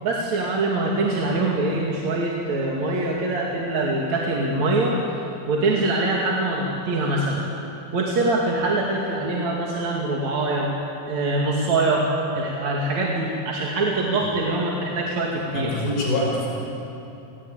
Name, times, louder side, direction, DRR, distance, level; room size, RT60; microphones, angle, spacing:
voice 1, 0.0-5.0 5.5-7.5 7.9-10.7 11.1-12.1 12.3-15.7, right 2 dB, 50° right, -3 dB, 3.5 m, -23 dB
voice 2, 15.5-16.5, left 1 dB, 85° left, -4 dB, 7.7 m, -24 dB
30.0 x 20.5 x 9.1 m, 2.9 s
omnidirectional pair, 4.2 m